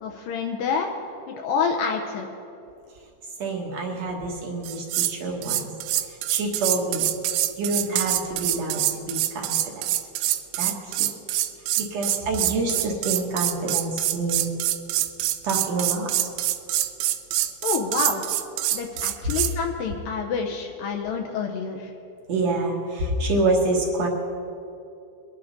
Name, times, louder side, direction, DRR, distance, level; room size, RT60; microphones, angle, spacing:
voice 1, 0.0-0.9 1.3-2.3 17.6-18.2 18.7-21.9, left 5 dB, 75° left, 2 dB, 2.3 m, -27 dB
voice 2, 3.4-5.7 6.1-7.1 7.6-9.8 10.6-10.9 11.8-14.5 15.4-16.1 22.3-24.1, right 2 dB, 60° right, 0 dB, 1.8 m, -27 dB
sound 1, 4.6-5.2 5.4-19.5, right 14 dB, 85° right, 2.6 m, -25 dB
22.5 x 11.0 x 4.0 m, 2.7 s
omnidirectional pair, 4.5 m